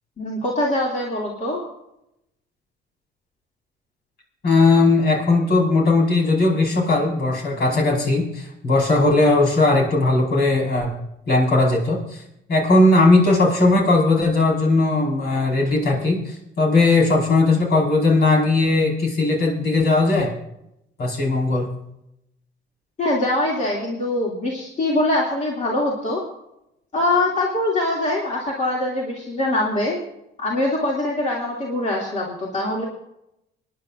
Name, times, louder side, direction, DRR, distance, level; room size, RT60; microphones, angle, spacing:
voice 1, 0.2-1.6 23.0-26.2 26.9-30.0 30.4-32.8, left 1 dB, 40° left, -3 dB, 2.6 m, -23 dB
voice 2, 4.4-10.9 11.3-12.2 12.5-20.3 21.0-21.7, left 2 dB, 60° left, -1 dB, 4.8 m, -18 dB
25.0 x 10.5 x 2.6 m, 0.82 s
cardioid pair, 100°, 19 cm